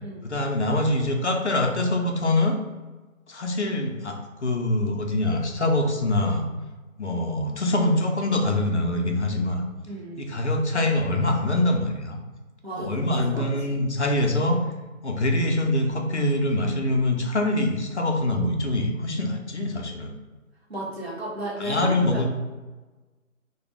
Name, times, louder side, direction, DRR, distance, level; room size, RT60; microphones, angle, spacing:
voice 1, 0.2-2.6 3.3-6.5 7.0-9.6 10.2-12.2 12.8-14.6 15.0-20.1 21.6-22.3, left 1 dB, 55° left, 2 dB, 0.5 m, -24 dB
voice 2, 9.9-10.2 12.6-13.0 13.3-13.8 20.7-22.3, right 1 dB, 50° right, -4 dB, 0.8 m, -34 dB
2.4 x 2.2 x 3.1 m, 1.2 s
figure-of-eight pair, 175°, 42 cm